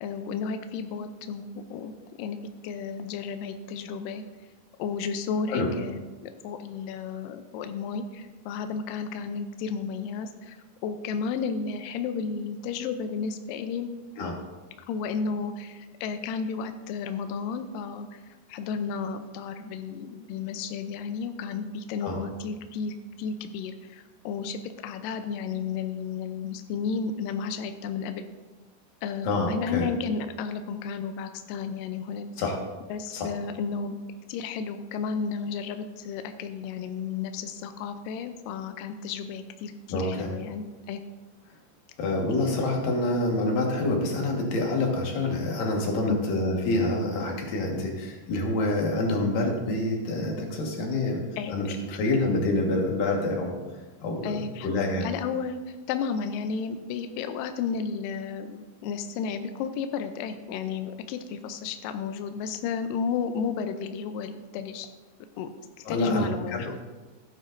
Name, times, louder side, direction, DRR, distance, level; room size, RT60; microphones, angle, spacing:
voice 1, 0.0-1.9 2.2-2.4 2.6-4.2 4.8-13.9 14.9-18.2 18.5-28.3 29.0-32.3 32.9-34.0 34.3-41.0 46.1-46.2 51.4-51.7 54.2-54.7 55.0-64.9 65.4-65.5 65.9-66.8, left 6 dB, 85° left, 8 dB, 2.0 m, -33 dB
voice 2, 29.2-29.9 32.4-32.5 33.1-33.3 39.9-40.3 42.0-51.2 51.5-53.5 54.0-55.1 65.9-66.6, left 2 dB, 65° left, 0 dB, 3.1 m, -27 dB
15.0 x 9.2 x 2.6 m, 1.3 s
omnidirectional pair, 4.6 m